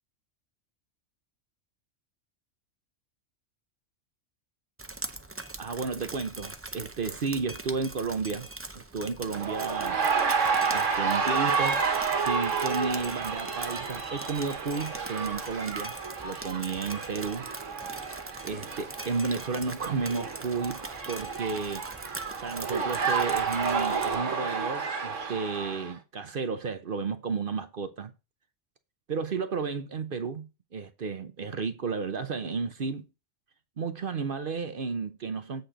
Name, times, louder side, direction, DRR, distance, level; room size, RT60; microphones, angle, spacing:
Drip, 4.8-24.1, right 2 dB, 20° right, 0.4 m, -42 dB
voice 1, 5.6-8.5 8.7-10.0 10.7-11.8 12.2-16.0 16.2-17.5 18.4-21.8 22.4-28.1 29.1-33.0 33.8-35.6, right 4 dB, 50° right, 0.9 m, -32 dB
sound 1, 9.3-25.9, right 5 dB, 80° right, 1.6 m, -30 dB
8.0 x 4.2 x 5.0 m
omnidirectional pair, 1.3 m